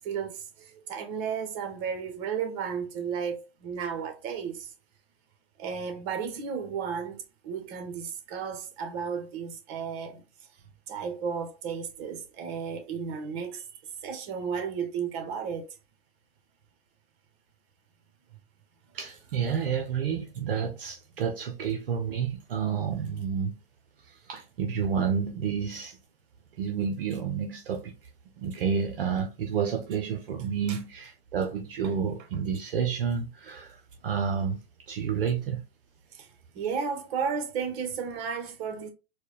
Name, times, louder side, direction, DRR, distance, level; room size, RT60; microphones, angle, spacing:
voice 1, 0.0-4.7 5.6-10.2 10.9-13.6 14.0-15.7 30.7-30.8 36.1-36.3 36.5-38.9, right 6 dB, 45° right, 1.1 m, -33 dB
voice 2, 18.9-23.5 24.3-26.0 26.6-27.9 28.4-34.6 34.9-35.6, right 7 dB, 65° right, 0.8 m, -30 dB
4.4 x 2.3 x 3.3 m
figure-of-eight pair, 100°, 31 cm